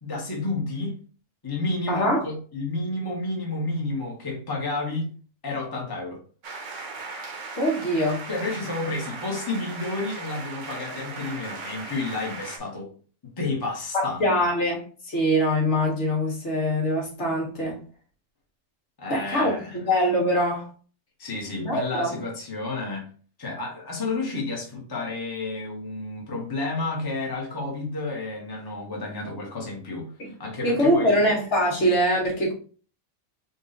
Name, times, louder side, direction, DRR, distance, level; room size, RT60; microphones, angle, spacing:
voice 1, 0.0-1.0 1.4-5.1 5.4-6.2 8.3-12.9 13.4-14.3 19.0-19.8 21.2-23.1 23.4-31.2, left 2 dB, 20° left, 0.9 m, -31 dB
voice 2, 1.9-2.2 7.6-8.2 13.9-17.8 19.1-20.7 21.6-22.2 30.2-30.3 30.6-32.5, equal, 60° left, 1.6 m, -23 dB
sound 1, 6.4-12.6, right 3 dB, 65° right, 1.1 m, -38 dB
4.0 x 2.4 x 3.9 m
omnidirectional pair, 1.4 m